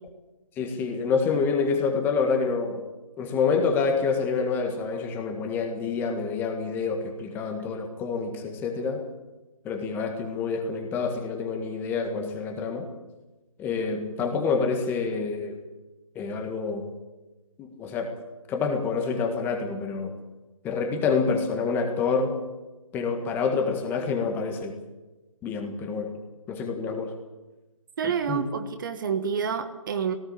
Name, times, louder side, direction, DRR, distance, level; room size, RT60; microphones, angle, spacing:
voice 1, 0.6-2.8 3.2-9.0 9.6-12.9 13.6-15.6 16.1-16.9 17.6-18.1 18.5-20.2 20.6-22.4 22.9-24.8 25.4-26.2 26.5-27.1 28.0-28.4, left 5 dB, 10° left, 4 dB, 1.7 m, -27 dB
voice 2, 28.0-30.2, right 7 dB, 40° right, 8 dB, 1.6 m, -28 dB
18.5 x 18.0 x 8.6 m, 1.1 s
figure-of-eight pair, 150°, 18 cm